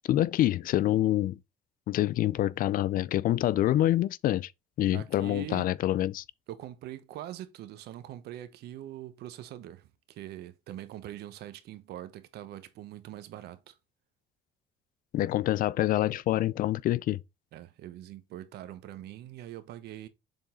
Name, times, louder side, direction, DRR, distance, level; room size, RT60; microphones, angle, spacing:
voice 1, 0.1-1.4 1.9-4.5 4.8-6.2 15.1-17.2, left 13 dB, 55° left, 0.4 m, -26 dB
voice 2, 4.9-5.7 6.5-13.8 17.5-20.1, right 12 dB, 75° right, 1.0 m, -43 dB
7.0 x 3.8 x 3.8 m
cardioid pair, 110°, 17 cm